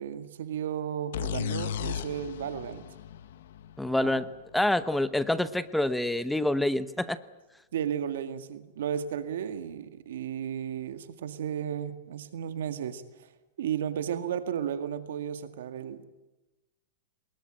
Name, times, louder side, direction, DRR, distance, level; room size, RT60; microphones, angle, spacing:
voice 1, 0.0-2.9 3.9-4.2 7.7-13.3 13.6-16.1, right 9 dB, 80° right, 10 dB, 1.9 m, -34 dB
sound 1, 1.1-4.8, left 9 dB, 75° left, 1.3 m, -36 dB
voice 2, 3.8-4.3 4.5-7.2, left 1 dB, 5° left, 14 dB, 0.9 m, -27 dB
23.0 x 20.5 x 9.0 m, 1.0 s
hypercardioid pair, 135°, 0 cm